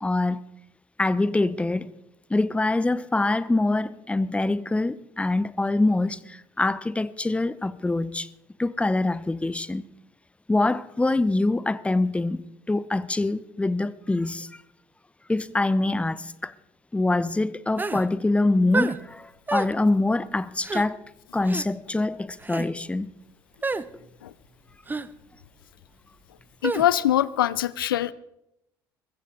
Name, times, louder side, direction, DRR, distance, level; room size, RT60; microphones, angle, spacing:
voice 1, 0.0-0.4 1.0-1.9 2.3-8.3 8.6-9.8 10.5-12.4 12.7-14.5 15.3-16.5 16.9-21.0 21.3-23.1, left 2 dB, 10° left, 0.8 m, -24 dB
sound 1, 17.8-18.1 18.7-19.0 19.5-19.7 20.6-20.9 21.4-21.7 22.4-22.7 23.6-23.9 24.9-25.1 26.6-26.9, right 3 dB, 15° right, 0.8 m, -28 dB
voice 2, 26.6-28.1, left 12 dB, 80° left, 0.4 m, -23 dB
21.5 x 15.0 x 3.9 m
figure-of-eight pair, 60°, 11 cm